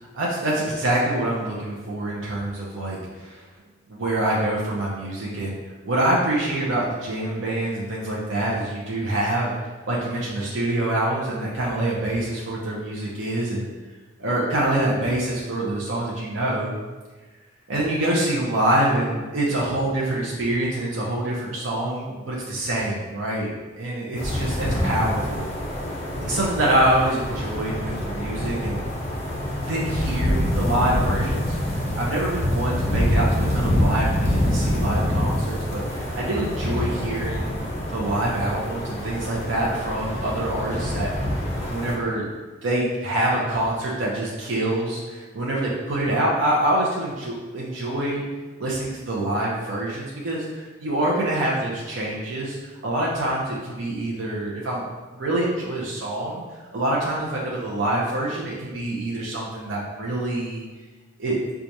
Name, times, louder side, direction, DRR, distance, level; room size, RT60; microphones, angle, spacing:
voice 1, 0.1-3.4 3.9-5.6 5.9-9.6 9.9-13.7 14.2-16.7 17.7-25.5 26.2-28.9 29.6-37.6 37.9-41.1 41.6-42.3 42.6-48.2 48.6-52.6 52.8-56.4 56.7-60.6 61.2-61.4, right 1 dB, 75° right, -5 dB, 0.6 m, -25 dB
sound 1, 24.1-41.9, left 1 dB, 35° left, 0.8 m, -26 dB
4.5 x 2.4 x 2.7 m, 1.3 s
head